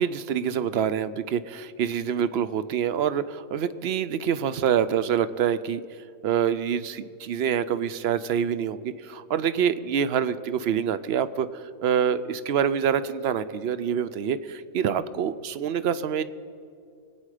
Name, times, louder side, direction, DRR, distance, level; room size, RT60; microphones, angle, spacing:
voice 1, 0.0-5.8 6.2-16.2, right 8 dB, 65° right, 14 dB, 0.7 m, -26 dB
23.0 x 8.9 x 4.9 m, 2.4 s
omnidirectional pair, 1.4 m